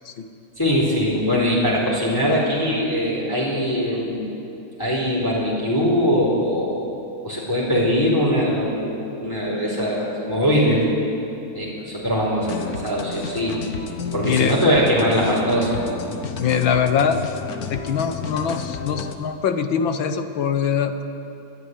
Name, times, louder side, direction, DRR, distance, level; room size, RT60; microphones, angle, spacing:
voice 1, 0.6-4.3 4.8-6.9 7.2-10.9 11.5-13.6 14.1-15.8, equal, 10° left, -5 dB, 4.2 m, -21 dB
sound 1, 12.4-19.2, left 5 dB, 50° left, 1.5 m, -32 dB
voice 2, 14.2-14.6 16.4-17.2 17.7-21.0, left 7 dB, 75° left, 8 dB, 1.9 m, -23 dB
28.5 x 11.5 x 9.6 m, 2.7 s
omnidirectional pair, 2.2 m